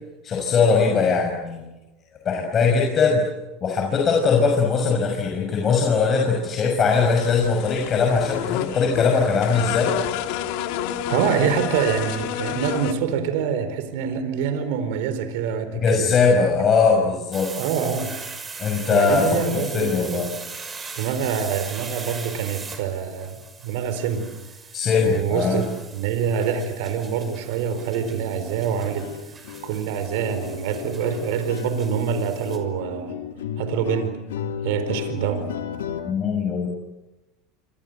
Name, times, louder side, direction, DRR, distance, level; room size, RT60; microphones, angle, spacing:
voice 1, 0.2-1.6 2.2-3.2 3.6-9.9 15.7-17.5 18.6-19.2 19.5-20.3 24.7-25.6 36.1-36.7, left 5 dB, 35° left, 1 dB, 6.2 m, -20 dB
sound 1, 6.9-12.9, left 11 dB, 70° left, 2.7 m, -29 dB
voice 2, 11.1-16.1 17.5-18.1 18.9-20.2 20.9-24.2 25.0-25.6 25.9-29.1 29.4-33.1 33.6-34.1 34.6-35.4, right 7 dB, 70° right, 9 dB, 4.4 m, -25 dB
sound 2, 17.3-32.6, right 4 dB, 20° right, 6.1 m, -40 dB
sound 3, 26.2-26.3 26.6-26.8 27.0-36.1, left 9 dB, 85° left, 2.3 m, -35 dB
27.5 x 26.5 x 8.1 m, 1.1 s
hypercardioid pair, 100°, 0 cm